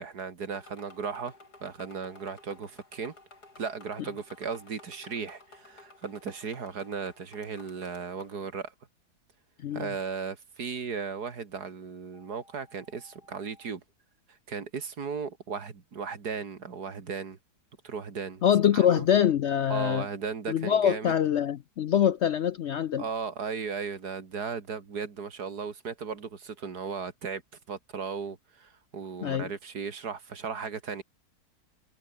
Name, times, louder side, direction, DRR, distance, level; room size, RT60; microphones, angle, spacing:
voice 1, 0.0-1.3 1.6-3.1 3.6-8.7 9.7-13.8 14.5-17.4 17.8-18.4 18.7-19.1 19.7-21.1 21.9-22.1 23.0-27.4 27.7-31.0, right 5 dB, 80° right, 2.8 m, -36 dB
sound 1, 0.5-8.4, left 3 dB, 85° left, 5.8 m, -54 dB
sound 2, 12.1-13.7, left 1 dB, 30° left, 7.8 m, -60 dB
voice 2, 18.4-20.1 20.5-23.0 29.2-29.5, left 9 dB, 60° left, 0.7 m, -24 dB
omnidirectional pair, 1.7 m